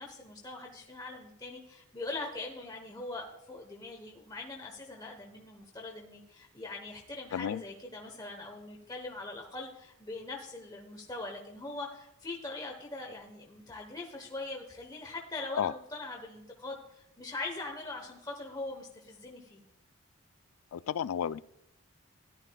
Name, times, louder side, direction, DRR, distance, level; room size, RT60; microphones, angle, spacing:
voice 1, 0.0-19.6, left 2 dB, 15° left, 1 dB, 1.0 m, -42 dB
voice 2, 7.3-7.6 15.6-15.7 20.7-21.4, left 8 dB, 75° left, 17 dB, 0.3 m, -32 dB
14.5 x 11.5 x 2.3 m, 0.85 s
head